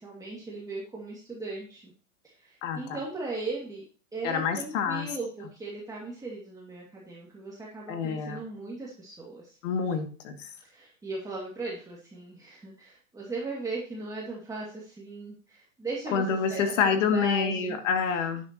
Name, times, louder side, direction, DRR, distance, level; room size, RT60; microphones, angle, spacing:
voice 1, 0.0-1.9 2.2-3.8 4.1-9.6 10.6-17.8, right 3 dB, 10° right, -4 dB, 2.4 m, -38 dB
voice 2, 2.6-3.0 4.2-5.1 7.9-8.4 9.6-10.5 16.1-18.4, left 6 dB, 65° left, 6 dB, 2.5 m, -27 dB
11.5 x 9.6 x 3.0 m, 0.39 s
hypercardioid pair, 130°, 40 cm